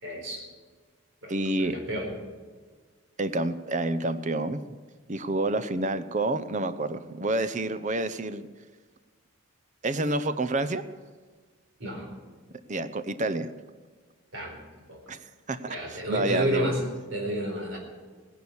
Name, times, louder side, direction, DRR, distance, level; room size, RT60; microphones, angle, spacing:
voice 1, 0.0-0.5 1.2-2.1 11.8-12.1 14.3-14.6 14.9-15.0 15.7-16.8 17.1-17.8, right 1 dB, 60° right, 1 dB, 4.5 m, -31 dB
voice 2, 1.3-1.8 3.2-4.8 5.1-8.5 9.8-10.8 12.7-13.5 15.1-15.2 15.5-16.7, right 2 dB, 35° right, 12 dB, 0.7 m, -28 dB
17.5 x 10.5 x 7.1 m, 1.5 s
head